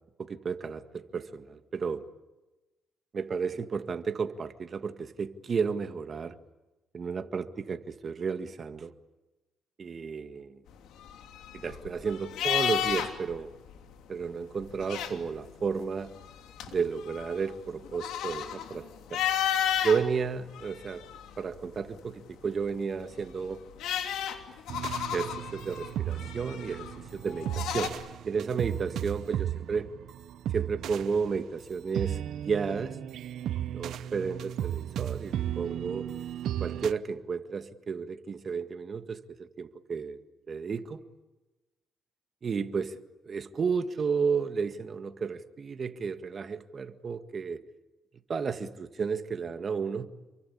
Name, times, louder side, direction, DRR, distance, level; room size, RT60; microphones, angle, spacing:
voice 1, 0.2-2.0 3.1-6.4 6.9-8.9 9.8-10.6 11.5-13.5 14.1-16.1 16.7-19.2 19.8-21.0 21.4-23.6 25.1-27.9 28.2-29.9 30.5-33.0 33.7-36.1 36.6-40.2 40.5-41.0 42.4-43.0 43.2-47.6 48.3-50.1, right 5 dB, 45° right, 9 dB, 1.9 m, -32 dB
sound 1, 10.8-13.4 13.7-13.8 14.6-15.5 16.1-20.0 20.6-21.5 23.0-27.9, left 10 dB, 85° left, 3.0 m, -32 dB
sound 2, 24.7-36.9, right 11 dB, 75° right, 0.8 m, -35 dB
28.5 x 23.5 x 8.6 m, 1.1 s
cardioid pair, 90°, 0 cm